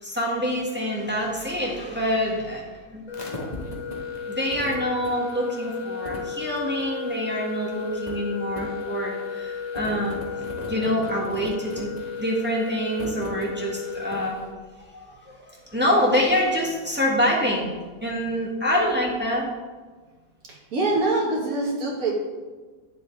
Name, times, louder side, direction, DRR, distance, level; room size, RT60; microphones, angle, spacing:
voice 1, 0.0-2.6 2.9-3.0 4.2-10.2 10.6-11.9 12.2-14.4 14.8-15.4 15.7-17.7 18.0-19.5 21.2-21.4, equal, 5° right, -3 dB, 1.2 m, -26 dB
sound 1, 3.1-14.4, left 5 dB, 25° left, 1.2 m, -33 dB
voice 2, 20.7-22.1, right 2 dB, 55° right, -1 dB, 1.9 m, -24 dB
9.2 x 7.0 x 3.3 m, 1.3 s
omnidirectional pair, 1.9 m